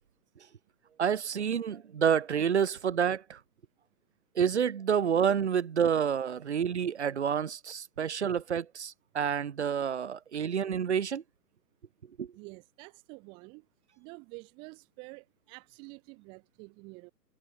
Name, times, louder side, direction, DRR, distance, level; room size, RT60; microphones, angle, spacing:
voice 1, 1.0-3.4 4.4-11.2 12.2-12.3, right 8 dB, 45° right, 1.8 m, -28 dB
voice 2, 12.4-13.6 14.0-17.1, right 29 dB, 10° right, 1.9 m, -49 dB
hypercardioid pair, 170°, 47 cm